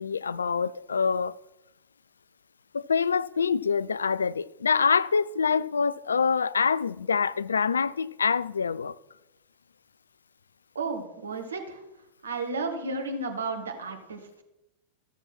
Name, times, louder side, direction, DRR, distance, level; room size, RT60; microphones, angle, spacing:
voice 1, 0.0-1.4 2.7-9.0, left 5 dB, 70° left, 0.3 m, -25 dB
voice 2, 10.7-11.8 12.2-14.4, right 3 dB, 70° right, 1.7 m, -33 dB
14.0 x 7.0 x 6.0 m
figure-of-eight pair, 90°, 0 cm